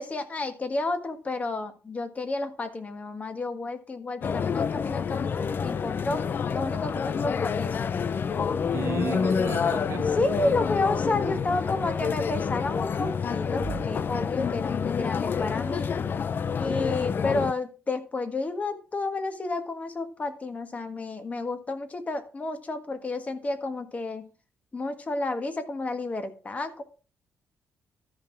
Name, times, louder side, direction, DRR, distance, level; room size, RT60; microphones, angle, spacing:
voice 1, 0.0-6.2 6.5-7.8 9.0-9.2 10.1-15.9 16.6-24.3 24.7-26.8, left 2 dB, 30° left, 8 dB, 1.5 m, -31 dB
sound 1, 4.2-17.5, left 6 dB, 45° left, 0.5 m, -28 dB
voice 2, 8.7-10.1, right 7 dB, 70° right, 4 dB, 1.8 m, -35 dB
13.0 x 5.6 x 4.5 m, 0.36 s
cardioid pair, 105°, 5 cm